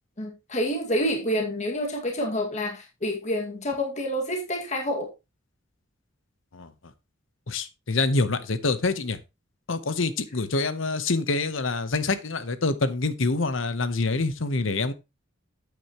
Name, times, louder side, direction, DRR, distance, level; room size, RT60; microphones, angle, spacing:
voice 1, 0.2-5.1, equal, 35° left, 2.0 m, -28 dB
voice 2, 7.5-9.2 9.7-14.9, left 3 dB, 65° left, 1.0 m, -26 dB
9.3 x 8.5 x 3.0 m
head